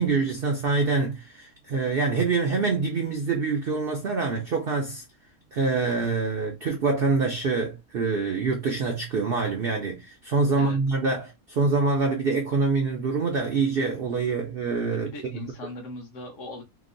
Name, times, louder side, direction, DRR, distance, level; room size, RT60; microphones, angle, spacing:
voice 1, 0.0-5.0 5.5-15.4, right 4 dB, 70° right, 0.5 m, -25 dB
voice 2, 14.9-16.6, left 2 dB, 60° left, 1.1 m, -39 dB
2.9 x 2.0 x 3.7 m
omnidirectional pair, 1.6 m